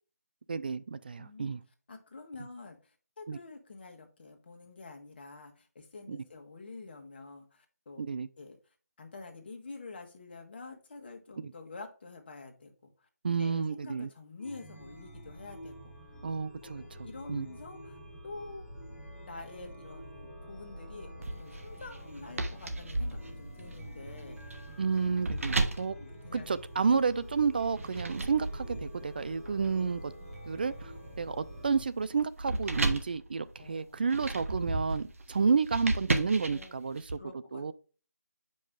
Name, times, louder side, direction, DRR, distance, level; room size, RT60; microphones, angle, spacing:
voice 1, 0.5-1.6 3.3-3.4 6.1-6.2 8.0-8.3 11.4-11.5 13.2-14.1 16.2-16.8 17.3-17.5 24.8-26.0 26.3-30.1 30.5-37.2 37.5-37.7, right 5 dB, 35° right, 0.3 m, -30 dB
voice 2, 1.2-1.5 1.9-8.1 8.4-8.6 9.0-13.1 13.4-15.9 16.6-18.0 18.2-18.7 19.3-24.6 25.4-25.5 26.0-26.5 33.6-34.0 36.4-36.7 37.2-37.7, left 3 dB, 40° left, 1.4 m, -47 dB
Chime, 14.4-31.8, equal, 5° right, 1.6 m, -47 dB
sound 1, 21.2-27.0 27.6-37.1, right 2 dB, 55° right, 1.0 m, -36 dB
6.4 x 5.3 x 3.6 m
figure-of-eight pair, 160°, 9 cm